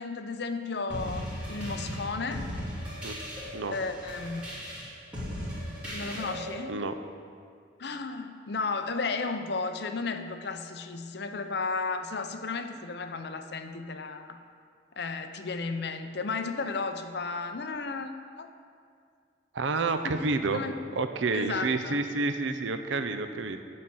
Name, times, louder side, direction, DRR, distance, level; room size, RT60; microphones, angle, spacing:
voice 1, 0.0-2.5 3.7-4.5 5.9-6.8 7.8-14.4 15.0-18.1 18.4-18.5 20.0-20.2 20.5-20.8 21.3-22.0, left 4 dB, 60° left, 7 dB, 0.6 m, -34 dB
sound 1, 0.9-6.5, equal, 5° right, 2.9 m, -37 dB
voice 2, 19.5-20.6 21.0-23.6, right 3 dB, 85° right, 9 dB, 0.6 m, -29 dB
11.5 x 4.2 x 7.8 m, 2.2 s
head